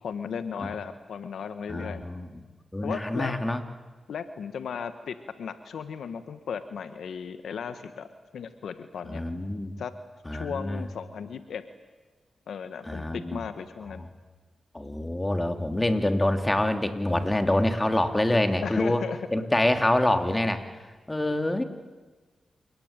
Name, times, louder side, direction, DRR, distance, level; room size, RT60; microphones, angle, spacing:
voice 1, 0.0-2.0 2.8-3.3 4.1-8.1 8.3-9.2 9.8-9.9 10.3-11.6 12.5-14.0 18.6-19.5, left 7 dB, 80° left, 10 dB, 1.4 m, -36 dB
voice 2, 1.7-2.3 2.7-3.6 9.1-9.7 10.2-10.8 12.8-13.4 14.7-19.0 19.3-20.6 21.1-21.6, left 1 dB, 20° left, 6 dB, 3.2 m, -26 dB
29.0 x 18.5 x 9.1 m, 1.3 s
cardioid pair, 45°, 0 cm